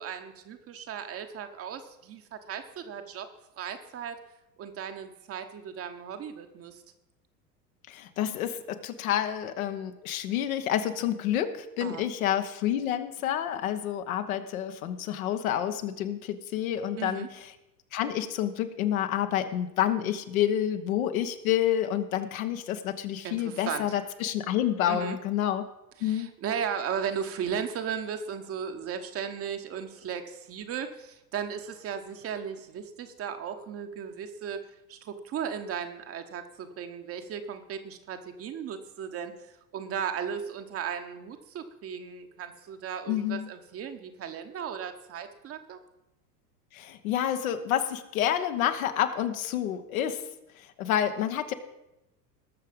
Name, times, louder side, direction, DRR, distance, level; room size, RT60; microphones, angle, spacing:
voice 1, 0.0-3.3 3.6-4.2 4.6-6.8 11.8-12.1 17.0-17.3 23.2-23.9 24.9-25.2 26.0-34.6 34.9-45.8, right 7 dB, 30° right, 7 dB, 1.1 m, -36 dB
voice 2, 7.9-17.5 17.9-25.6 26.0-26.3 43.1-43.5 46.7-50.2 50.6-51.5, left 10 dB, 55° left, 8 dB, 1.3 m, -29 dB
19.5 x 6.7 x 5.3 m, 0.92 s
figure-of-eight pair, 85°, 50 cm